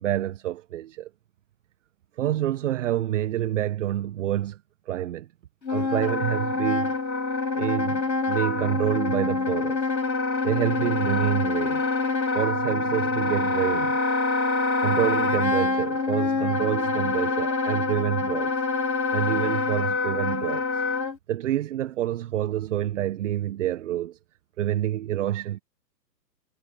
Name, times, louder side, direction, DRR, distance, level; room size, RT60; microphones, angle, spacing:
voice 1, 0.0-1.1 2.2-4.6 4.9-5.3 5.7-6.9 7.5-9.9 10.4-11.9 12.3-14.0 14.8-18.5 19.1-20.8 21.3-24.2 24.6-25.6, right 12 dB, 45° right, 1.5 m, -27 dB
Wind instrument woodwind instrument, 5.6-21.1, left 3 dB, 90° left, 3.8 m, -25 dB
hypercardioid pair, 135°, 50 cm